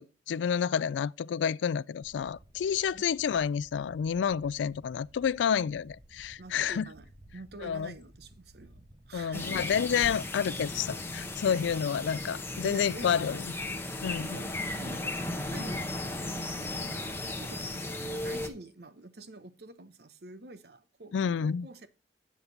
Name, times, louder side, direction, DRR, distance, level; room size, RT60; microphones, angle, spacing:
voice 1, 0.0-6.9 7.6-7.9 9.1-13.5 14.0-14.4 21.1-21.7, left 7 dB, 85° left, 0.3 m, -29 dB
sound 1, 2.0-9.8, right 1 dB, 25° right, 1.1 m, -56 dB
voice 2, 6.4-8.8 9.1-9.7 12.6-13.4 13.9-16.8 17.2-21.9, right 2 dB, 60° right, 0.8 m, -47 dB
sound 2, 9.3-18.5, left 2 dB, 15° left, 0.9 m, -36 dB
7.9 x 7.3 x 3.9 m
head